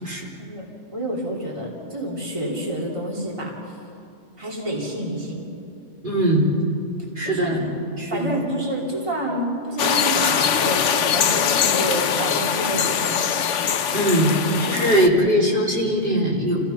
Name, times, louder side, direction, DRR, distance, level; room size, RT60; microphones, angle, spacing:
voice 1, 0.4-3.5 4.4-5.4 7.2-7.6 8.1-13.3, right 1 dB, 25° right, -4 dB, 3.2 m, -28 dB
voice 2, 6.0-6.5 7.2-7.7 8.0-8.4 13.9-14.3 14.6-16.6, equal, 45° right, -4 dB, 3.5 m, -20 dB
sound 1, 9.8-15.1, left 7 dB, 90° left, 1.2 m, -22 dB
30.0 x 16.5 x 5.8 m, 2.5 s
omnidirectional pair, 1.2 m